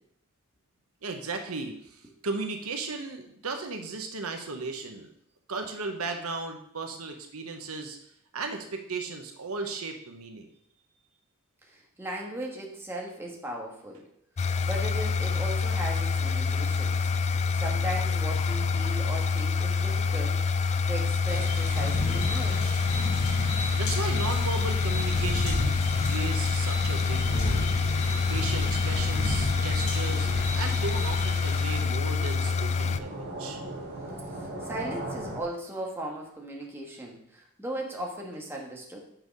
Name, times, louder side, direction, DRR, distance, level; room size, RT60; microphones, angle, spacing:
voice 1, 1.0-5.1 5.5-8.0 8.3-10.5 23.7-25.8 26.1-27.7 28.3-30.3 30.5-33.6, right 3 dB, 80° right, 5 dB, 1.0 m, -35 dB
voice 2, 11.6-14.0 14.6-17.1 17.5-20.4 20.9-22.7 34.6-39.0, right 1 dB, 10° right, -1 dB, 1.5 m, -37 dB
sound 1, 14.4-33.0, left 5 dB, 30° left, 0.3 m, -27 dB
sound 2, 21.3-31.8, left 1 dB, 70° left, 2.3 m, -33 dB
sound 3, 27.2-35.4, right 1 dB, 50° right, 1.4 m, -41 dB
6.4 x 6.0 x 5.3 m, 0.72 s
head